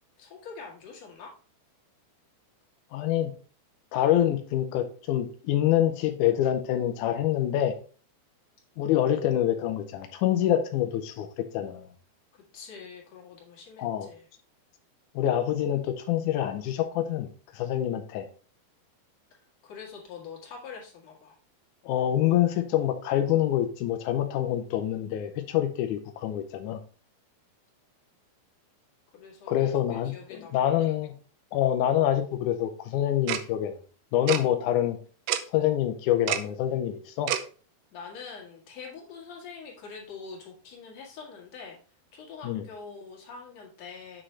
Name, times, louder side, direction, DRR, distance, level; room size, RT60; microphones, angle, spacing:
voice 1, 0.2-1.3 12.3-14.3 19.6-21.3 29.1-29.7 30.0-31.1 37.9-41.8 42.1-44.2, left 5 dB, 50° left, -2 dB, 2.9 m, -44 dB
voice 2, 2.9-3.3 3.9-7.7 8.8-11.3 11.5-11.9 13.8-14.1 15.2-17.3 17.5-18.2 21.9-26.8 29.5-31.1 31.5-33.7 34.1-35.0 35.5-37.3 42.4-42.6, left 11 dB, 85° left, 6 dB, 1.8 m, -26 dB
Tick-tock, 33.3-33.4 34.3-34.4 35.3-35.4 36.3-36.4 37.3-37.4, right 12 dB, 85° right, 2.0 m, -26 dB
7.8 x 6.2 x 3.2 m, 0.38 s
omnidirectional pair, 4.4 m